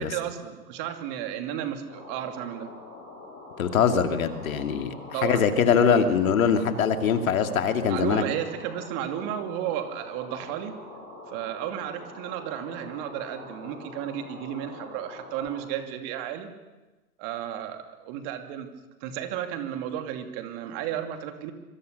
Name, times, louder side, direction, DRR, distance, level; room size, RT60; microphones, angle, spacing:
voice 1, 0.0-2.7 5.1-5.4 7.9-10.7 11.3-16.5 17.2-18.7 19.0-21.5, right 10 dB, 30° right, 6 dB, 2.7 m, -33 dB
sound 1, 1.9-15.6, left 2 dB, 20° left, 6.2 m, -44 dB
voice 2, 3.6-4.9 5.2-8.2, left 7 dB, 60° left, 7 dB, 2.7 m, -22 dB
25.5 x 24.0 x 6.8 m, 1.1 s
hypercardioid pair, 130°, 47 cm